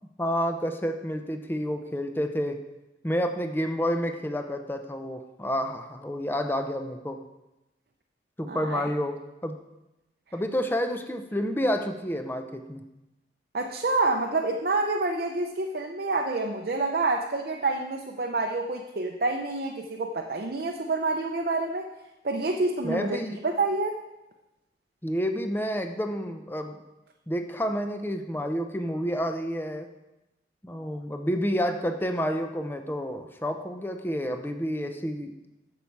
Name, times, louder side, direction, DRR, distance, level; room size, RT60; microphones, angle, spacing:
voice 1, 0.2-2.6 3.0-7.2 8.4-9.6 10.3-12.8 22.8-23.4 25.0-26.7 27.3-29.9 30.6-35.3, equal, 10° left, 7 dB, 0.6 m, -29 dB
voice 2, 8.5-8.8 13.5-21.9 22.2-24.0, right 3 dB, 55° right, 2 dB, 0.6 m, -28 dB
9.4 x 7.1 x 4.6 m, 0.98 s
head